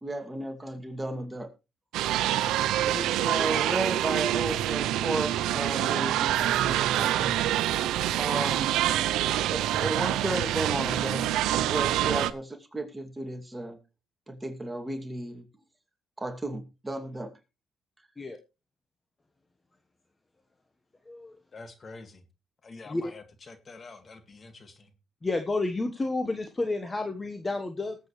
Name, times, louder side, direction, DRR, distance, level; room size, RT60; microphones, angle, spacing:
voice 1, 0.0-1.5 2.9-7.4 8.2-8.7 9.5-13.8 14.3-15.5 16.2-17.3, right 2 dB, 15° right, 4 dB, 2.5 m, -34 dB
sound 1, 1.9-12.3, right 13 dB, 90° right, 0.6 m, -26 dB
voice 2, 21.5-22.2 22.6-24.9, left 3 dB, 40° left, 9 dB, 2.1 m, -47 dB
voice 3, 25.2-28.0, left 2 dB, 20° left, 6 dB, 1.3 m, -30 dB
19.5 x 8.1 x 3.2 m, 0.28 s
cardioid pair, 90°, 0 cm